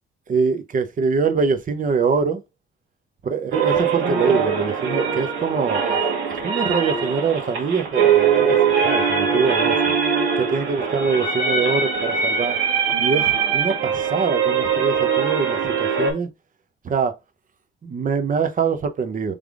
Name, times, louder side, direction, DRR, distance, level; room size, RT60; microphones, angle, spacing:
voice 1, 0.3-2.4 3.2-6.0 6.4-8.6 8.8-9.9 10.4-12.6 13.0-16.3 16.8-17.1 17.8-19.3, right 5 dB, 40° right, 0.8 m, -23 dB
sound 1, 3.5-16.1, right 6 dB, 85° right, 1.9 m, -21 dB
3.5 x 3.5 x 3.6 m
cardioid pair, 90°, 20 cm